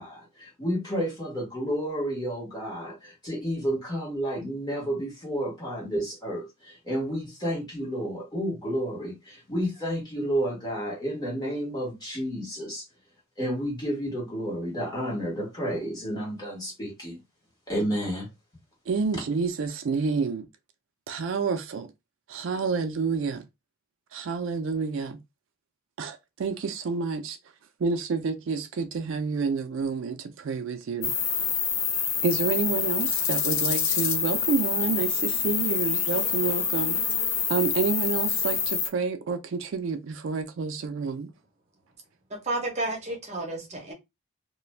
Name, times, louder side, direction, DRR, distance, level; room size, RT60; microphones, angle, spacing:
voice 1, 0.0-12.8 13.4-17.2 17.7-18.3, equal, 20° left, 1.2 m, -31 dB
voice 2, 18.9-20.5 21.1-21.9 22.3-23.4 24.1-25.2 26.0-27.4 27.8-31.1 32.2-37.0 37.5-41.3, right 4 dB, 65° right, 0.3 m, -29 dB
sound 1, 31.0-38.9, left 6 dB, 70° left, 0.6 m, -26 dB
voice 3, 42.3-43.9, right 2 dB, 30° right, 0.7 m, -31 dB
2.4 x 2.2 x 3.1 m
head